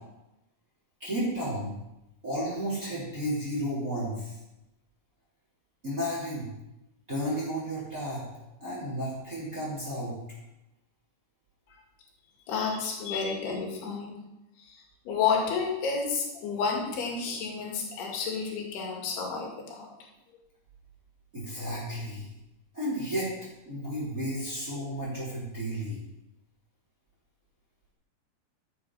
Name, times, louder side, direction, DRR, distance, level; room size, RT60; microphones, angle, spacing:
voice 1, 1.0-1.7 2.2-4.4 5.8-6.5 7.1-8.2 8.6-10.2 12.5-12.8 21.3-22.3 22.7-23.3 23.7-26.0, equal, 20° right, -7 dB, 3.6 m, -32 dB
voice 2, 12.5-14.2 14.6-19.9, left 5 dB, 70° left, 0 dB, 4.2 m, -31 dB
13.5 x 7.6 x 5.6 m, 0.91 s
omnidirectional pair, 4.9 m